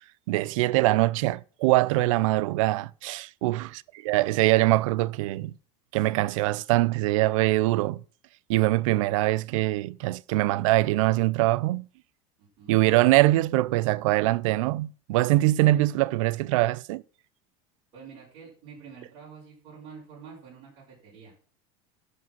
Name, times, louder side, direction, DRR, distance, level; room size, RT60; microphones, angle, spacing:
voice 1, 0.3-3.7 4.0-5.5 5.9-8.0 8.5-11.9 12.7-17.0, right 18 dB, 70° right, 0.5 m, -23 dB
voice 2, 12.4-12.8 17.9-21.3, right 6 dB, 35° right, 5.0 m, -47 dB
11.0 x 5.2 x 6.0 m
cardioid pair, 180°, 17 cm